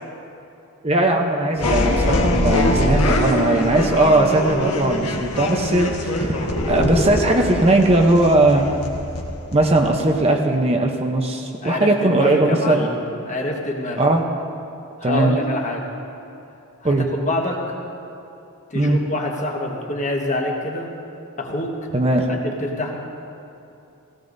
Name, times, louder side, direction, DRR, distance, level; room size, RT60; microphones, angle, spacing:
voice 1, 0.8-8.7 9.5-12.9 14.0-14.2 15.0-15.3 16.8-17.1 18.7-19.0 21.9-22.3, right 2 dB, 25° right, 2 dB, 0.7 m, -18 dB
sound 1, 1.6-10.2, left 1 dB, 90° left, 1.3 m, -23 dB
voice 2, 11.6-13.0 13.2-14.0 15.0-15.9 16.8-17.6 18.7-20.9 21.4-21.8 22.3-23.0, left 1 dB, 35° left, 0 dB, 1.3 m, -26 dB
17.0 x 16.5 x 2.6 m, 2.7 s
head